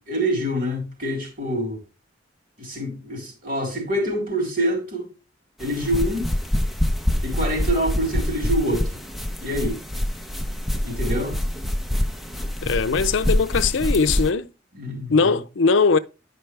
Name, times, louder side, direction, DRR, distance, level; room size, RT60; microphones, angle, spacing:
voice 1, 0.1-1.8 2.6-5.1 5.6-6.3 7.2-9.0 9.4-9.8 10.8-11.4 14.7-15.3, equal, 45° right, 4.1 m, -26 dB
sound 1, 5.6-14.3, left 1 dB, ahead, 0.7 m, -25 dB
voice 2, 12.6-14.5 15.1-16.0, left 4 dB, 75° left, 0.5 m, -20 dB
10.0 x 5.4 x 3.3 m
head